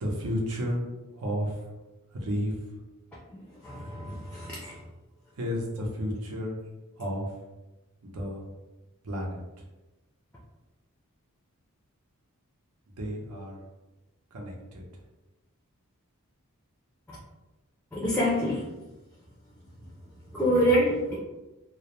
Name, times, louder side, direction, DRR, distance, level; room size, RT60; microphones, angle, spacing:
voice 1, 0.0-0.8 1.1-1.7 2.1-2.6 5.4-6.6 7.0-7.3 8.0-8.4 9.0-9.4 13.0-13.6 14.3-14.8, equal, 90° right, 0 dB, 0.6 m, -32 dB
voice 2, 3.3-4.8 17.9-18.7 20.3-21.1, equal, 5° left, -7 dB, 0.4 m, -26 dB
2.3 x 2.0 x 2.9 m, 1.1 s
head